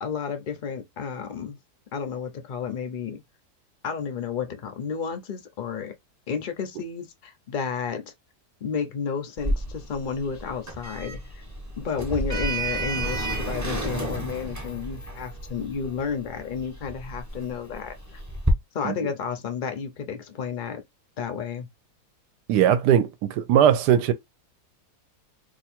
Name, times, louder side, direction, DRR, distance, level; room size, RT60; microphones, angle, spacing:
voice 1, 0.0-1.6 1.9-3.2 3.8-5.9 6.3-8.1 8.6-11.4 11.8-17.9 18.7-20.8 21.2-21.7, left 6 dB, 65° left, 0.4 m, -31 dB
Sliding door, 9.4-18.5, right 1 dB, 15° right, 0.6 m, -31 dB
voice 2, 22.5-24.1, right 9 dB, 90° right, 1.2 m, -20 dB
2.8 x 2.5 x 4.3 m
omnidirectional pair, 1.8 m